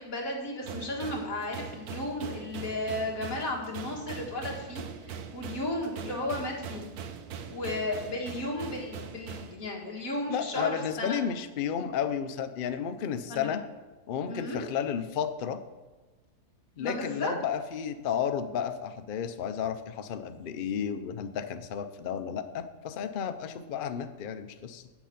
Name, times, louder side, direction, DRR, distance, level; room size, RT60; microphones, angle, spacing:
voice 1, 0.0-6.8 7.5-11.2 13.3-13.5 14.3-14.6 16.8-17.3, left 1 dB, 60° left, -1 dB, 2.2 m, -34 dB
sound 1, 0.6-9.6, right 7 dB, 70° right, 1.2 m, -41 dB
voice 2, 10.3-13.6 14.1-15.6 16.8-24.8, left 8 dB, 85° left, 9 dB, 0.4 m, -32 dB
8.1 x 6.9 x 5.8 m, 1.2 s
omnidirectional pair, 1.7 m